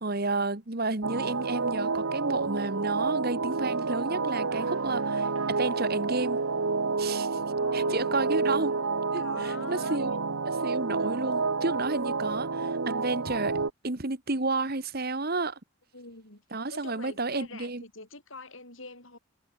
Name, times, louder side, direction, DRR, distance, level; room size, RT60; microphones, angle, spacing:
voice 1, 0.0-6.4 7.0-7.4 7.7-8.7 9.1-10.1 10.6-15.6 16.5-17.8, right 3 dB, 45° right, 1.5 m, -31 dB
sound 1, 1.0-13.7, right 4 dB, 70° right, 1.1 m, -29 dB
voice 2, 7.6-8.4 9.2-10.2 15.9-19.2, left 3 dB, 65° left, 7.3 m, -44 dB
head